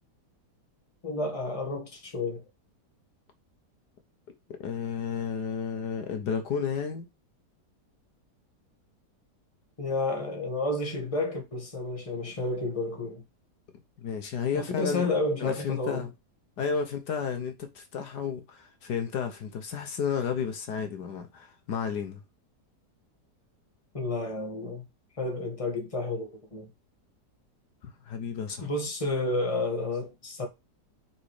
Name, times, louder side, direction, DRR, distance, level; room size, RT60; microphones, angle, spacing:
voice 1, 1.0-2.4 9.8-13.2 14.5-16.1 23.9-24.9 25.2-26.7 28.6-30.5, left 2 dB, 20° left, 1.8 m, -31 dB
voice 2, 4.6-7.1 14.0-15.1 15.4-16.1 16.6-22.2 27.8-28.7, left 6 dB, 70° left, 1.6 m, -32 dB
6.2 x 4.1 x 4.8 m
omnidirectional pair, 1.8 m